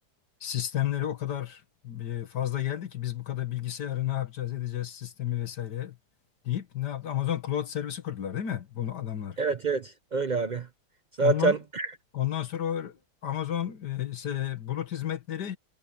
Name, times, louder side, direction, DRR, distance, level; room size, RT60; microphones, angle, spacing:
voice 1, 0.4-6.0 6.5-9.4 11.2-11.6 12.1-15.6, left 11 dB, 85° left, 2.0 m, -31 dB
voice 2, 9.4-10.7 11.2-11.9, right 4 dB, 65° right, 0.4 m, -26 dB
omnidirectional pair, 1.8 m